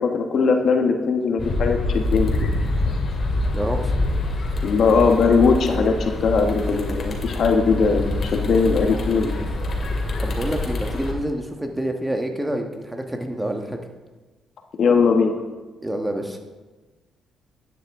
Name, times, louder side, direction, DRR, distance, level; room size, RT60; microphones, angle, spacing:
voice 1, 0.0-2.5 4.6-9.3 14.8-15.4, left 5 dB, 60° left, 3 dB, 1.1 m, -20 dB
sound 1, 1.4-11.1, left 2 dB, 45° left, 2.2 m, -25 dB
voice 2, 3.5-3.9 10.2-13.8 15.8-16.4, right 1 dB, 10° right, 4 dB, 1.3 m, -27 dB
11.5 x 9.5 x 3.6 m, 1.3 s
cardioid pair, 90°, 0 cm